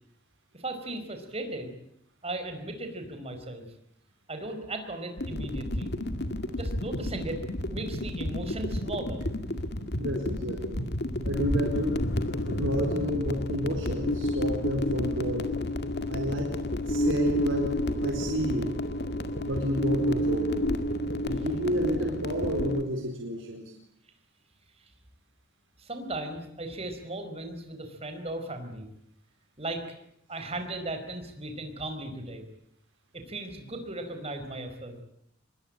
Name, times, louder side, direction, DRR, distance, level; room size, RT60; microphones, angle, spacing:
voice 1, 0.5-1.7 2.2-3.7 4.3-5.9 6.5-7.4 7.7-9.3 25.8-28.9 29.6-29.8 30.3-32.4 33.1-35.0, right 2 dB, 30° right, 7 dB, 5.0 m, -37 dB
sound 1, 5.2-22.8, left 1 dB, 55° left, 2.2 m, -30 dB
voice 2, 9.9-10.8 11.2-12.0 12.5-15.6 16.1-16.5 16.9-18.7 19.4-20.7 21.2-23.7, equal, 90° right, 2 dB, 4.4 m, -30 dB
25.5 x 22.5 x 8.8 m, 0.72 s
head